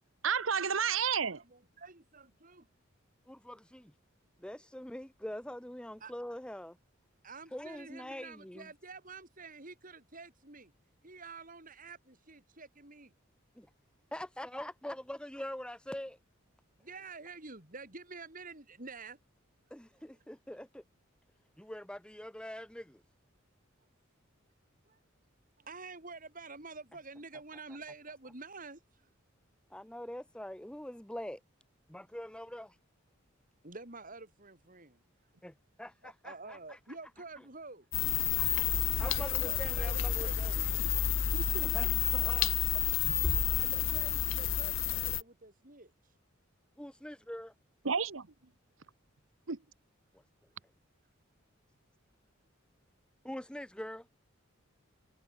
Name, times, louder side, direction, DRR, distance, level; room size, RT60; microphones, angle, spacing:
voice 1, 0.2-1.4 41.3-41.7 42.1-42.3 47.8-48.3 49.5-49.6, right 6 dB, 80° right, 1.2 m, -31 dB
voice 2, 1.3-2.7 6.0-6.1 7.2-10.7 11.0-13.1 16.8-19.2 24.9-25.0 25.6-29.1 33.6-35.0 36.0-37.9 39.0-40.8 43.4-46.1, right 3 dB, 40° right, 5.1 m, -49 dB
voice 3, 3.3-3.9 4.4-6.8 7.5-8.7 13.6-13.7 14.1-16.2 19.7-20.8 21.6-23.0 29.7-31.4 31.9-32.8 35.4-36.8 38.2-40.6 41.6-42.5 46.8-47.5 53.2-54.1, left 1 dB, 5° left, 1.0 m, -44 dB
sound 1, 37.9-45.2, left 9 dB, 70° left, 0.8 m, -30 dB
head